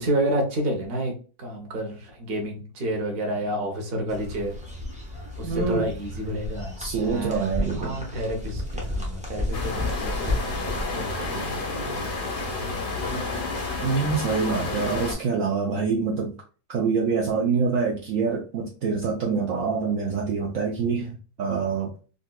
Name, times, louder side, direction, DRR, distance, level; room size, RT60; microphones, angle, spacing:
voice 1, 0.0-4.5 5.4-12.1 12.4-13.3, right 1 dB, 45° right, 1 dB, 1.0 m, -30 dB
sound 1, 4.1-10.8, left 1 dB, 10° right, 0.3 m, -32 dB
voice 2, 5.4-5.9 6.8-8.0 13.8-16.3 16.7-21.9, right 5 dB, 65° right, -2 dB, 0.9 m, -25 dB
sound 2, 9.5-15.1, left 3 dB, 45° left, 0.7 m, -30 dB
3.9 x 2.6 x 2.2 m, 0.36 s
omnidirectional pair, 1.7 m